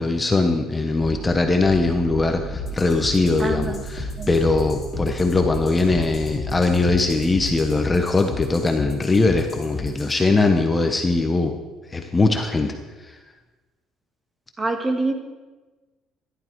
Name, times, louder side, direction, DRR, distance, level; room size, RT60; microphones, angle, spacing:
voice 1, 0.0-11.5 11.9-12.7, left 3 dB, 15° left, 4 dB, 1.0 m, -21 dB
sound 1, 1.0-7.9, right 7 dB, 55° right, 0.7 m, -36 dB
sound 2, 2.5-10.2, left 5 dB, 30° left, 2.8 m, -34 dB
voice 2, 3.4-3.8 4.2-4.3 14.6-15.1, right 3 dB, 20° right, 5 dB, 1.5 m, -25 dB
14.0 x 11.5 x 4.7 m, 1.2 s
cardioid pair, 135°, 0 cm